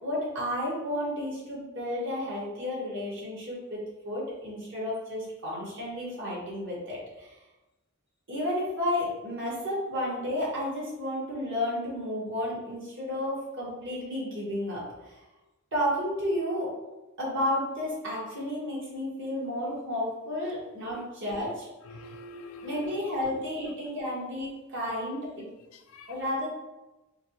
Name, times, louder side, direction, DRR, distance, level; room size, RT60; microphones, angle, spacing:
voice 1, 0.0-7.3 8.3-15.2 15.7-16.7 17.2-21.7 22.6-25.4 26.1-26.5, left 1 dB, 60° right, -6 dB, 1.5 m, -32 dB
voice 2, 21.8-23.7 25.7-26.2, left 2 dB, 70° left, 7 dB, 0.4 m, -45 dB
3.7 x 2.8 x 2.8 m, 1.1 s
head